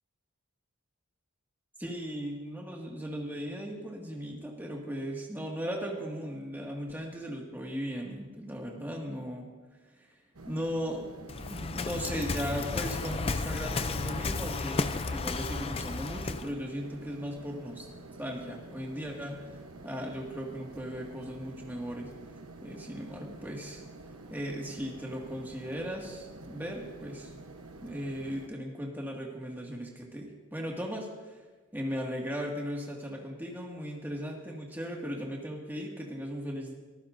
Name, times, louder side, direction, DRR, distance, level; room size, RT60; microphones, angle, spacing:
voice 1, 1.8-9.5 9.9-10.1 10.5-11.1 11.5-17.9 18.2-19.4 19.8-22.1 22.6-23.8 24.3-27.3 27.8-31.4 31.7-36.7, equal, 10° right, -1 dB, 2.0 m, -37 dB
sound 1, 10.3-28.5, right 2 dB, 85° right, 1.0 m, -49 dB
Waves surf, 11.3-16.5, left 3 dB, 25° left, 0.4 m, -33 dB
24.0 x 14.5 x 2.7 m, 1.2 s
head